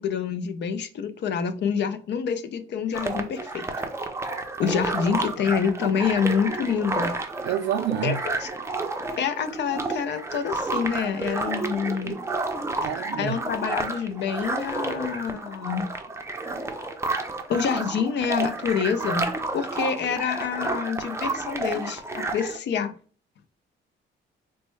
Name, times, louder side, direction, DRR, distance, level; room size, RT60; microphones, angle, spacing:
voice 1, 0.0-3.6 4.6-7.1 8.0-8.5 9.2-12.2 13.2-15.9 17.5-22.9, left 7 dB, 60° left, 0.5 m, -27 dB
sound 1, 2.9-22.6, right 2 dB, 15° right, 0.5 m, -31 dB
voice 2, 7.5-8.2 12.8-13.3, right 10 dB, 65° right, 0.4 m, -27 dB
4.3 x 2.1 x 3.1 m
cardioid pair, 90°, 20 cm